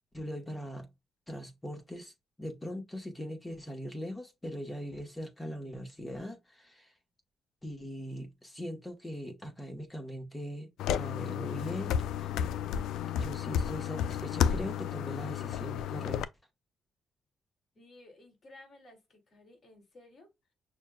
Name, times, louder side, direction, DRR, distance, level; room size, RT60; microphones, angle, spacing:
voice 1, 0.1-0.9 1.3-6.9 7.6-12.4 13.2-16.2, equal, 15° left, 1.1 m, -41 dB
sound 1, 10.8-16.2, left 9 dB, 85° left, 0.3 m, -32 dB
voice 2, 17.7-20.5, left 2 dB, 40° left, 2.6 m, -56 dB
6.2 x 2.3 x 2.2 m
cardioid pair, 90°, 0 cm